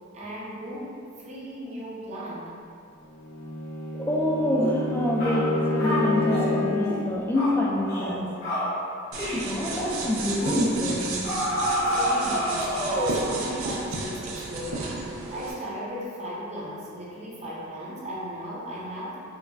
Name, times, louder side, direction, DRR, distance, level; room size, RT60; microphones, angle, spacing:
voice 1, 0.1-2.5 11.9-15.0 15.3-19.2, right 1 dB, 35° right, -6 dB, 0.6 m, -36 dB
Bowed string instrument, 3.1-7.0, left 2 dB, 80° left, 0.6 m, -28 dB
voice 2, 3.9-8.3 9.2-11.3, left 1 dB, 10° left, -3 dB, 0.3 m, -26 dB
sound 1, 4.6-4.8 5.2-5.4 5.8-6.5 6.8-7.1 7.3-7.6 7.9-8.1 8.4-8.7 9.1-9.4 9.7-10.0 10.4-10.6 11.2-13.3, equal, 50° left, 1.0 m, -28 dB
sound 2, 9.1-15.5, right 3 dB, 90° right, 0.4 m, -33 dB
4.5 x 2.2 x 2.4 m, 2.4 s
head